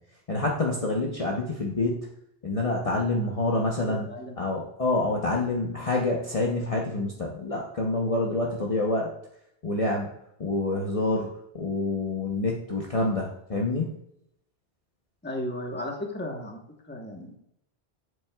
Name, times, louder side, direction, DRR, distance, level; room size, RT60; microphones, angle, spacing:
voice 1, 0.3-2.1 2.4-4.1 4.4-9.1 9.6-10.1 10.4-11.3 11.5-14.0, left 2 dB, 35° left, -2 dB, 0.9 m, -27 dB
voice 2, 3.9-4.4 15.2-16.6 16.9-17.3, left 1 dB, 10° left, 1 dB, 1.1 m, -35 dB
8.1 x 7.5 x 2.3 m, 0.77 s
omnidirectional pair, 1.1 m